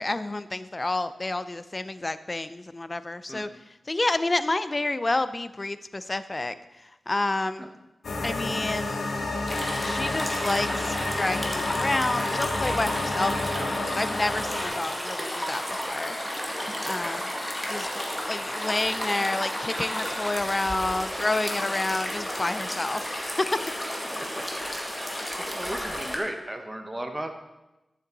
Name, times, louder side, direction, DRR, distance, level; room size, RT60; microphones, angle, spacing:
voice 1, 0.0-3.5 3.9-7.7 8.2-9.1 9.8-16.2 16.8-17.3 17.7-17.9 18.3-23.6, left 2 dB, 30° left, 13 dB, 0.5 m, -29 dB
sound 1, 8.0-14.7, left 2 dB, 80° left, 1.5 m, -30 dB
sound 2, 9.5-26.2, equal, 5° left, 2.0 m, -32 dB
voice 2, 25.1-27.3, right 1 dB, 15° right, 4 dB, 1.4 m, -36 dB
13.0 x 7.3 x 4.0 m, 0.98 s
wide cardioid pair, 70°, 0 cm